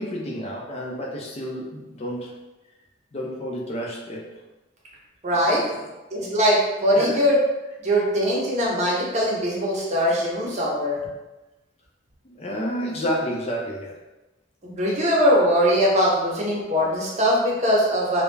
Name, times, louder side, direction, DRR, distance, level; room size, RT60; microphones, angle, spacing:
voice 1, 0.0-2.3 3.1-4.3 5.3-5.8 7.0-7.2 12.2-13.9, equal, 35° left, -2 dB, 0.4 m, -30 dB
voice 2, 5.2-5.6 6.1-7.4 7.8-11.0 14.6-18.2, equal, 40° right, -4 dB, 0.7 m, -21 dB
2.3 x 2.1 x 3.1 m, 1.1 s
head